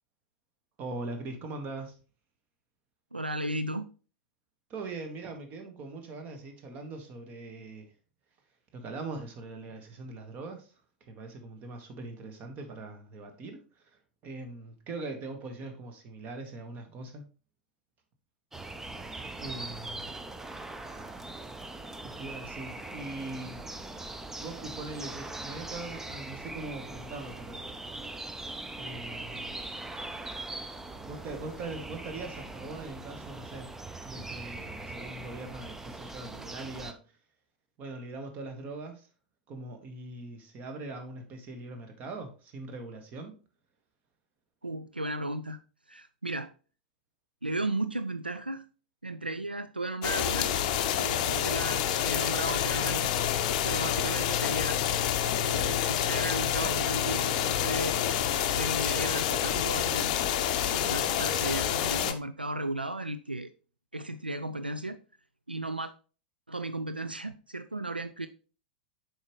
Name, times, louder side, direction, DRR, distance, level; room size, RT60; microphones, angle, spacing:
voice 1, 0.8-2.0 4.7-7.9 8.7-10.7 11.0-13.8 14.2-17.2 18.7-19.0 19.4-20.1 22.2-23.6 24.4-27.7 28.8-29.6 31.0-33.7 34.0-37.0 37.8-39.1 39.5-43.4, right 3 dB, 35° right, 5 dB, 1.4 m, -41 dB
voice 2, 3.1-3.9 44.6-45.6 45.9-46.5 47.4-48.6 49.0-50.5 50.9-53.1 53.6-54.8 55.4-58.0 58.5-60.1 60.7-63.5 63.9-65.0 65.5-65.9 66.5-68.3, right 2 dB, 90° right, 11 dB, 0.3 m, -35 dB
sound 1, 18.5-36.9, right 2 dB, 10° right, 0.6 m, -41 dB
sound 2, 50.0-62.1, left 10 dB, 45° left, 0.6 m, -28 dB
7.2 x 5.0 x 3.0 m, 0.36 s
figure-of-eight pair, 95°, 5 cm